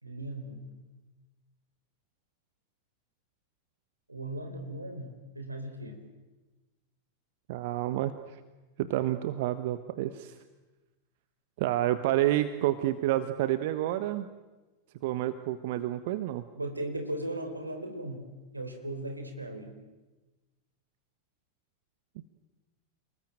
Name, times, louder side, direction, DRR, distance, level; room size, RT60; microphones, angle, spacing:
voice 1, 0.0-0.7 4.1-6.0 16.5-19.8, right 1 dB, 85° right, 5 dB, 4.3 m, -37 dB
voice 2, 7.5-8.4 8.8-10.3 11.6-14.3 15.0-16.4, right 14 dB, 50° right, 12 dB, 1.3 m, -29 dB
29.0 x 20.5 x 9.1 m, 1.2 s
figure-of-eight pair, 90°, 0 cm